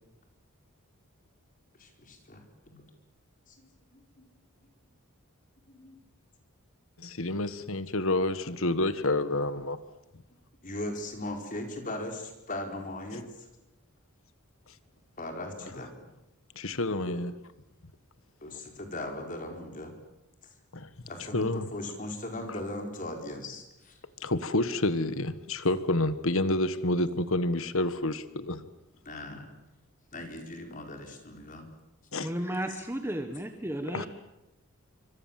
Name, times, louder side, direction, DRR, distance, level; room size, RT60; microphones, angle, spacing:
voice 1, 1.8-2.8 3.5-4.3 5.7-6.0 10.6-13.5 15.2-15.9 16.9-17.2 18.4-19.9 21.1-24.0 29.0-29.5 30.1-31.7 32.5-32.8, left 1 dB, 35° left, 4 dB, 4.7 m, -39 dB
voice 2, 7.0-9.8 16.5-17.3 20.7-20.9 21.3-21.7 24.2-28.6 32.1-32.3 33.9-34.1, left 2 dB, 65° left, 13 dB, 1.4 m, -28 dB
voice 3, 32.2-34.1, right 1 dB, 10° right, 6 dB, 1.3 m, -33 dB
26.5 x 25.0 x 7.5 m, 0.94 s
head